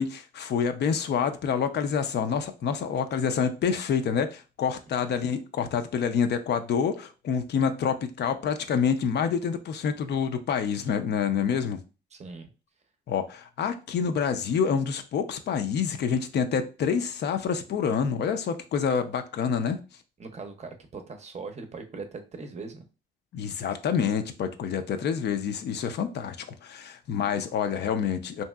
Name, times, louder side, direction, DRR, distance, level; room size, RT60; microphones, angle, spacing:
voice 1, 0.0-11.8 13.1-19.8 23.3-26.4 26.6-28.4, left 7 dB, 60° left, 8 dB, 0.4 m, -27 dB
voice 2, 12.1-12.5 20.2-22.9, right 4 dB, 35° right, 6 dB, 0.6 m, -40 dB
2.9 x 2.7 x 2.3 m, 0.32 s
cardioid pair, 90°, 20 cm